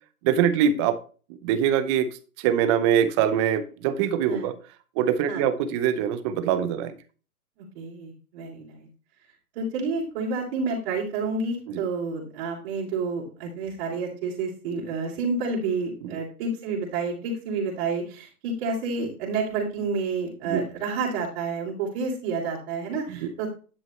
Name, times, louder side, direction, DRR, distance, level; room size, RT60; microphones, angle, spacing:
voice 1, 0.2-1.0 1.4-2.1 2.4-4.5 5.0-6.9 11.7-11.8 16.0-16.2 20.4-20.6 23.1-23.3, right 9 dB, 20° right, 12 dB, 0.6 m, -23 dB
voice 2, 7.6-8.9 9.5-23.5, right 4 dB, 45° right, -4 dB, 3.3 m, -29 dB
11.0 x 6.2 x 3.2 m, 0.37 s
hypercardioid pair, 140°, 45 cm